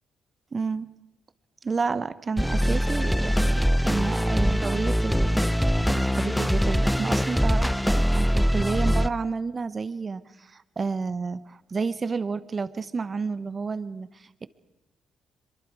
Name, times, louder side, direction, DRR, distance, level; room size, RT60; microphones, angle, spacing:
voice 1, 0.5-0.9 1.6-14.5, right 4 dB, 40° right, 14 dB, 1.1 m, -31 dB
sound 1, 2.4-9.1, equal, ahead, 0.7 m, -23 dB
24.0 x 23.0 x 4.8 m, 1.0 s
supercardioid pair, 65°, 0 cm